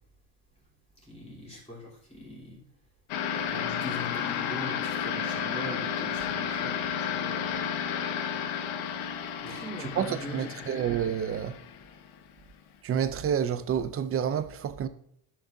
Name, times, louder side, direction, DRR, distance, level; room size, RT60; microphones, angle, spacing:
voice 1, 1.0-2.6 3.3-7.6 9.4-10.7, left 1 dB, 15° left, 3.1 m, -42 dB
sound 1, 3.1-12.2, left 8 dB, 90° left, 1.1 m, -32 dB
voice 2, 9.5-11.6 12.8-14.9, right 8 dB, 30° right, 0.4 m, -29 dB
11.5 x 5.9 x 2.6 m
cardioid pair, 150°, 47 cm